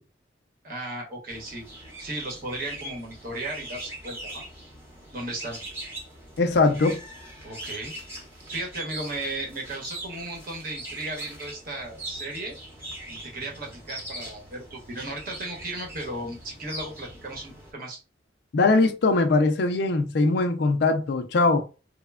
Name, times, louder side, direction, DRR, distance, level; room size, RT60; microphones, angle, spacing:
voice 1, 0.6-1.6 2.0-4.4 5.1-5.6 7.4-7.9 8.5-12.6 13.1-18.0, right 2 dB, 50° right, 0.9 m, -35 dB
sound 1, 1.3-17.7, right 1 dB, 15° right, 0.7 m, -41 dB
voice 2, 6.4-7.0 18.5-21.6, left 3 dB, 60° left, 0.4 m, -21 dB
3.1 x 2.1 x 2.2 m
head